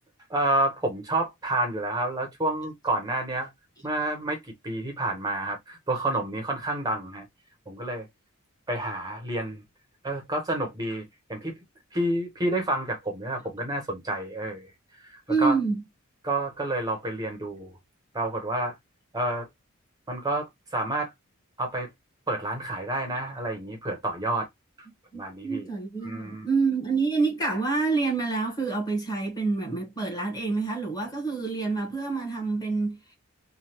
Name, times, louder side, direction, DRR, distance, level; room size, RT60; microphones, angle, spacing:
voice 1, 0.3-3.5 3.8-7.2 7.7-8.1 8.7-9.6 10.0-11.0 11.3-11.5 11.9-14.7 15.0-15.6 16.2-17.7 18.1-18.7 19.1-19.5 20.1-21.1 21.6-21.9 22.3-24.5 25.1-25.7 26.0-26.5, right 1 dB, 20° right, 0.7 m, -29 dB
voice 2, 15.3-15.8 25.1-33.1, right 4 dB, 20° left, 1.1 m, -27 dB
3.1 x 2.2 x 2.7 m
head